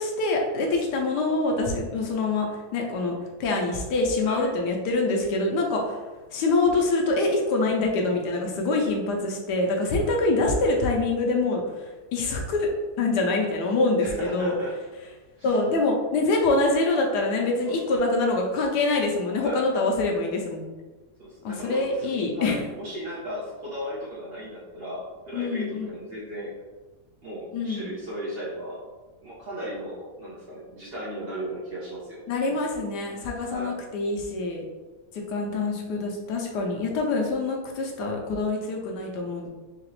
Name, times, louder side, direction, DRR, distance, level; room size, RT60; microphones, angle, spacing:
voice 1, 0.0-6.0 6.3-12.7 13.0-14.5 15.4-20.7 21.4-22.6 25.3-25.9 27.5-27.9 32.3-34.6 35.1-39.5, left 2 dB, 80° left, 1 dB, 1.3 m, -25 dB
voice 2, 14.0-14.7 15.4-15.5 17.7-18.0 19.3-19.7 21.2-22.1 22.3-26.5 27.2-28.8 29.2-32.2 33.5-33.7, equal, 45° right, -7 dB, 0.8 m, -36 dB
3.9 x 2.8 x 3.0 m, 1.2 s
omnidirectional pair, 1.8 m